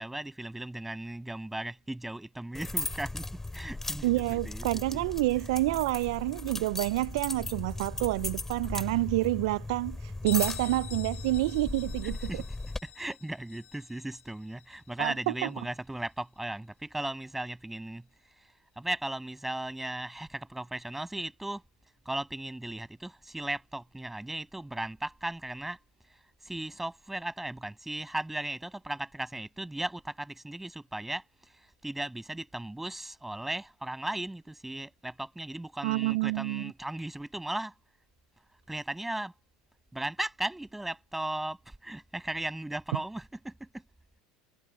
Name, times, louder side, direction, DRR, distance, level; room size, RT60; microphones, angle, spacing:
voice 1, 0.0-5.1 5.3-5.4 12.0-12.6 12.8-21.6 22.1-25.8 26.0-37.7 38.7-39.3 39.9-43.8, right 1 dB, 5° right, 7.3 m, -37 dB
sound 1, 2.5-12.8, left 2 dB, 10° left, 3.0 m, -37 dB
voice 2, 4.0-10.0 10.2-12.2 15.0-15.1 35.8-36.6, right 20 dB, 75° right, 0.3 m, -28 dB
Bell, 10.3-15.8, left 11 dB, 45° left, 5.0 m, -46 dB
supercardioid pair, 100°, 3 cm